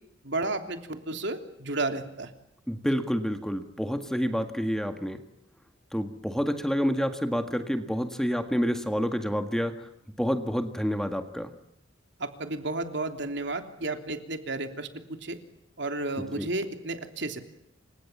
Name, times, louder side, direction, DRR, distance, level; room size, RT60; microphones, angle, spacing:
voice 1, 0.2-2.3 12.2-15.4 15.8-17.4, right 2 dB, 60° right, 6 dB, 3.2 m, -32 dB
voice 2, 2.7-5.2 5.9-9.9 10.2-11.5 16.4-16.5, equal, 5° left, 7 dB, 1.8 m, -28 dB
29.0 x 26.0 x 7.3 m, 0.82 s
head